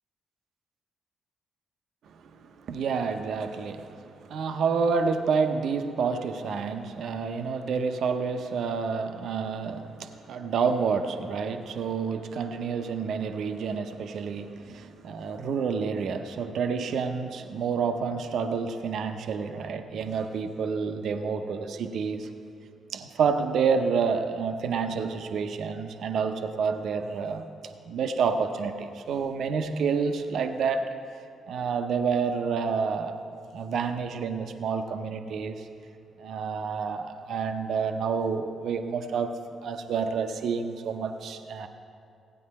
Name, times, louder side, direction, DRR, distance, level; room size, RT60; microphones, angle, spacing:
voice 1, 2.6-22.3 22.9-27.5 27.9-30.9 31.5-33.2 33.5-35.7 36.2-39.3 39.6-41.7, right 5 dB, 65° right, 7 dB, 0.7 m, -29 dB
16.0 x 9.2 x 4.2 m, 2.4 s
hypercardioid pair, 45°, 0 cm